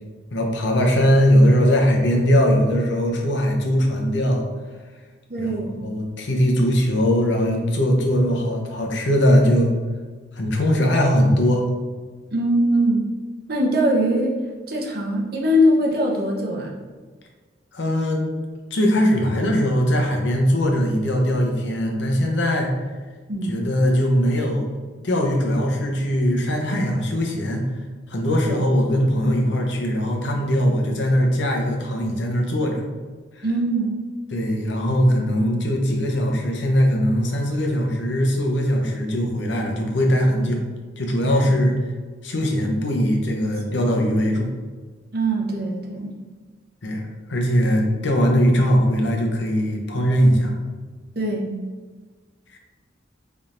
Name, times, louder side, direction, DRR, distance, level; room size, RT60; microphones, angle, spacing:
voice 1, 0.3-4.4 5.4-9.7 10.4-11.7 17.7-18.2 18.7-22.7 23.5-24.6 25.0-27.7 28.1-32.8 33.4-33.5 34.3-40.6 41.0-41.8 42.2-44.5 46.8-47.0 47.3-50.6 52.5-52.6, equal, 70° left, 1 dB, 0.7 m, -20 dB
voice 2, 5.3-5.7 12.3-13.0 13.5-14.3 14.7-16.7 23.3-23.5 28.5-28.6 33.4-33.9 43.4-43.6 45.1-46.1 51.1-51.5, equal, 50° right, -1 dB, 0.7 m, -21 dB
4.2 x 3.6 x 2.5 m, 1.4 s
head